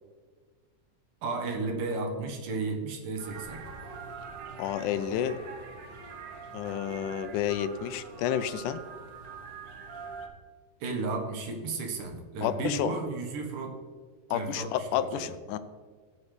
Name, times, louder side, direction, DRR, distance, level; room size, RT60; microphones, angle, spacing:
voice 1, 1.2-3.6 10.8-13.8 14.3-15.3, right 3 dB, 85° right, 2 dB, 3.0 m, -33 dB
sound 1, 3.2-10.3, right 5 dB, 70° right, 1.0 m, -44 dB
voice 2, 4.6-5.4 6.5-8.8 12.4-13.0 14.3-15.6, left 10 dB, 80° left, 12 dB, 2.0 m, -30 dB
17.5 x 7.2 x 3.3 m, 1.5 s
omnidirectional pair, 3.6 m